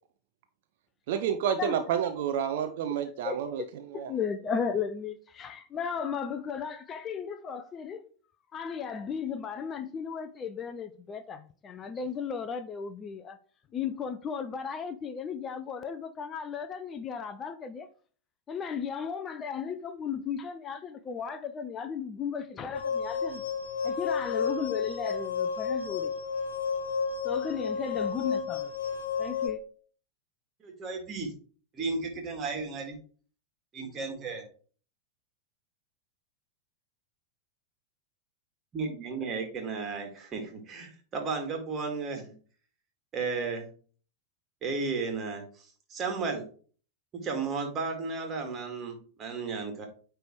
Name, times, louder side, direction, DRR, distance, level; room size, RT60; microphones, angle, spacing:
voice 1, 1.1-3.6 3.9-4.1, right 8 dB, 50° right, 0.6 m, -29 dB
voice 2, 3.2-3.7 3.9-8.0 8.5-13.4 13.7-17.9 18.5-23.4 23.8-26.1 27.2-28.7 29.2-29.6, left 7 dB, 25° left, 0.5 m, -35 dB
sound 1, 22.7-29.5, left 6 dB, 70° left, 1.5 m, -31 dB
voice 3, 30.6-31.3 31.7-33.0 33.7-34.4 38.7-42.3 43.1-43.7 44.6-45.4 45.9-46.4 47.2-49.9, right 4 dB, 25° right, 2.2 m, -34 dB
9.1 x 3.4 x 4.5 m
figure-of-eight pair, 90°, 0 cm